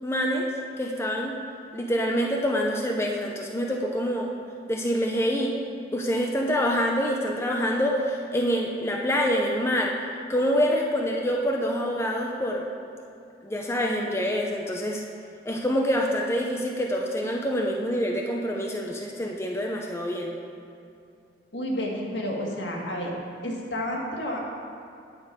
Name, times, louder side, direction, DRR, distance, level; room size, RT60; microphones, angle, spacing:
voice 1, 0.0-0.4 0.8-1.3 1.7-4.3 4.7-5.5 5.9-9.9 10.3-12.6 13.4-15.0 15.5-20.3, equal, 15° left, 0 dB, 0.7 m, -26 dB
voice 2, 21.5-23.1 23.4-24.4, equal, 75° left, -1 dB, 1.9 m, -30 dB
9.7 x 8.5 x 5.2 m, 2.5 s
head